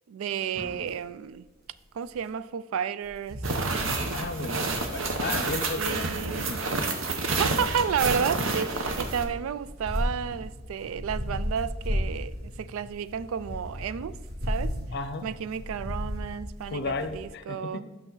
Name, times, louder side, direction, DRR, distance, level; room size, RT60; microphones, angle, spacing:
voice 1, 0.1-1.5 1.9-4.0 5.8-6.6 7.2-14.2 14.5-14.7 15.2-17.8, right 7 dB, 90° right, 0.3 m, -32 dB
sound 1, 0.6-0.9 2.1-2.2 3.0-17.3, equal, 50° right, 1.8 m, -36 dB
sound 2, 3.4-9.2, right 3 dB, 70° right, 0.9 m, -29 dB
voice 2, 4.1-4.6 4.9-6.6 14.9-15.3 16.7-17.8, left 3 dB, 55° left, 0.6 m, -34 dB
8.4 x 5.9 x 3.9 m
head